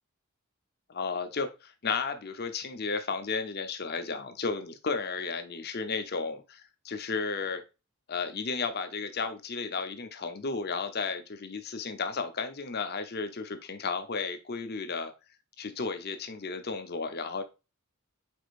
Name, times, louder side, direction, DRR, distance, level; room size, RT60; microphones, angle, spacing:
voice 1, 0.9-7.6 8.1-15.1 15.6-17.4, left 4 dB, 45° left, 8 dB, 0.7 m, -33 dB
4.9 x 4.4 x 2.5 m, 0.27 s
head